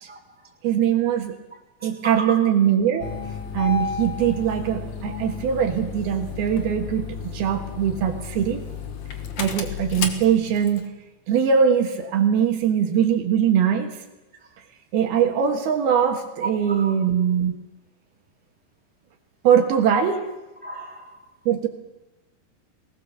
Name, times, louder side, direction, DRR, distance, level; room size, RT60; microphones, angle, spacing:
voice 1, 0.1-0.5 1.5-2.4 5.1-5.2 16.7-16.9 20.6-21.3, right 3 dB, ahead, -2 dB, 3.3 m, -36 dB
voice 2, 0.6-1.3 1.8-3.1 3.5-8.6 9.4-10.8 11.3-14.0 14.9-17.6 19.4-20.2 21.5-21.7, right 8 dB, 75° right, 4 dB, 3.3 m, -21 dB
Engine starting, 3.0-10.9, left 6 dB, 55° left, 2.4 m, -33 dB
21.5 x 19.0 x 7.0 m, 1.1 s
omnidirectional pair, 4.6 m